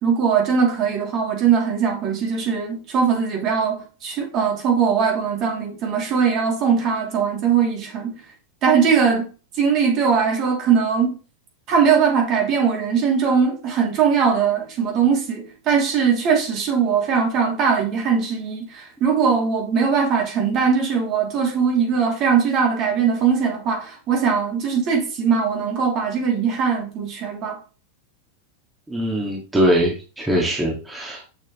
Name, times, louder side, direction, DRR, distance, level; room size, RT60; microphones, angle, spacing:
voice 1, 0.0-8.2 8.6-9.3 9.6-11.2 11.7-27.6, right 6 dB, 40° right, 3.0 m, -20 dB
voice 2, 28.9-31.3, equal, 10° right, 2.0 m, -22 dB
7.3 x 6.4 x 3.2 m
hypercardioid pair, 125°, 0 cm